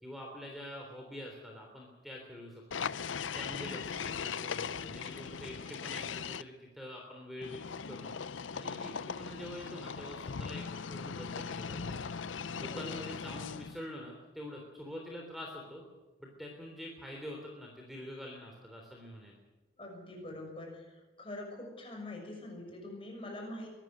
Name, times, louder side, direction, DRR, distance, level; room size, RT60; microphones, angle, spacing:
voice 1, 0.0-3.0 3.3-7.6 7.8-8.1 8.5-12.1 12.6-15.8 16.2-19.3, left 1 dB, ahead, 0 dB, 3.4 m, -46 dB
sound 1, 2.7-6.4 7.4-13.8, left 6 dB, 85° left, 0.6 m, -39 dB
voice 2, 12.6-13.0 19.8-23.7, left 1 dB, 30° left, 1 dB, 6.4 m, -44 dB
23.5 x 13.0 x 9.5 m, 1.1 s
head